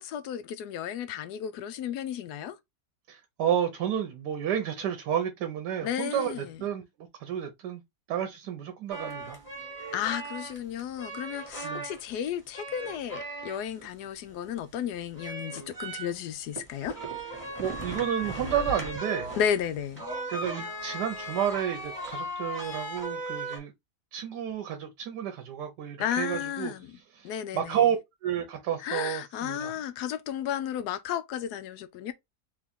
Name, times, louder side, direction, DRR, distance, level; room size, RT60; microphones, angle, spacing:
voice 1, 0.0-2.6 5.8-6.6 9.9-17.0 19.4-20.0 26.0-27.0 27.2-27.8 28.8-32.1, left 9 dB, 80° left, 1.1 m, -33 dB
voice 2, 3.1-6.8 7.2-7.8 8.1-9.4 11.6-11.9 17.6-19.3 20.3-23.7 24.1-26.7 27.1-28.0 28.2-29.7, right 9 dB, 85° right, 1.3 m, -31 dB
sound 1, 8.9-12.1 12.5-13.9 14.3-23.6, right 1 dB, 5° left, 1.7 m, -37 dB
3.7 x 3.0 x 3.5 m
omnidirectional pair, 1.7 m